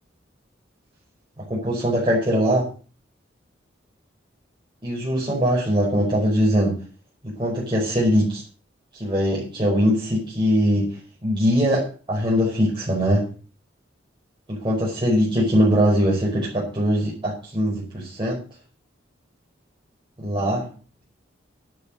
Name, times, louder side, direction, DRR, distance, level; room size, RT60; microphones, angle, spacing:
voice 1, 1.4-2.7 4.8-6.8 7.2-8.4 8.9-13.3 14.5-18.4 20.2-20.7, equal, 25° right, -5 dB, 5.4 m, -21 dB
11.5 x 9.8 x 6.3 m, 0.36 s
head